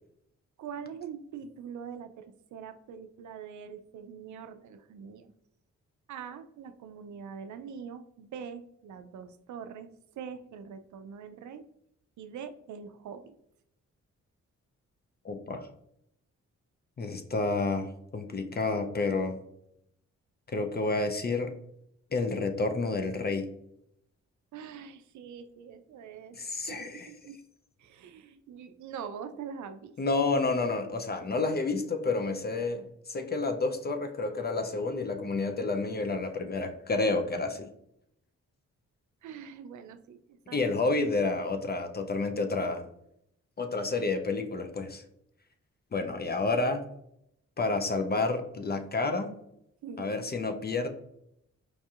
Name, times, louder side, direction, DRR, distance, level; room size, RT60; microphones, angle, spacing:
voice 1, 0.6-5.3 6.1-11.6 12.2-13.3 24.5-26.4 26.7-27.4 27.8-29.9 39.2-40.6 49.8-50.1, right 7 dB, 70° right, 9 dB, 0.5 m, -43 dB
voice 2, 15.2-15.7 17.0-17.9 18.1-19.4 20.5-21.5 22.1-23.5 26.4-27.1 30.0-37.7 40.5-42.8 43.6-45.0 45.9-46.8 47.6-49.3 50.0-50.9, left 3 dB, 30° left, 6 dB, 0.5 m, -30 dB
4.7 x 2.6 x 2.4 m, 0.76 s
cardioid pair, 55°, 31 cm